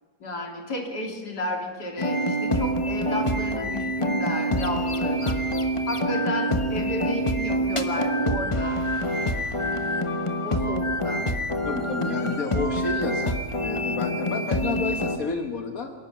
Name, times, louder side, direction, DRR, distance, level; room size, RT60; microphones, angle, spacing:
voice 1, 0.2-5.4 5.9-8.8 10.4-11.3, left 2 dB, 85° left, 2 dB, 3.5 m, -32 dB
sound 1, 2.0-15.2, equal, 20° left, 1.1 m, -26 dB
voice 2, 11.7-15.9, left 4 dB, 60° left, 5 dB, 1.7 m, -31 dB
27.0 x 11.5 x 9.1 m, 1.5 s
omnidirectional pair, 1.7 m